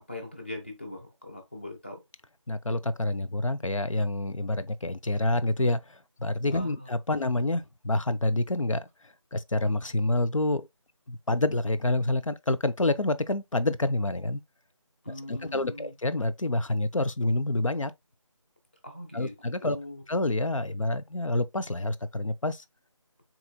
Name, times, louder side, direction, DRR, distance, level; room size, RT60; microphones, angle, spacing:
voice 1, 0.0-2.0 6.5-6.9 7.2-7.3 15.0-15.9 18.8-20.0, left 1 dB, 20° left, 0.7 m, -41 dB
voice 2, 2.5-8.9 9.3-10.7 11.1-14.4 15.3-17.9 19.1-19.8 20.1-22.6, left 2 dB, 75° left, 0.6 m, -28 dB
7.8 x 3.0 x 2.2 m
figure-of-eight pair, 165°, 17 cm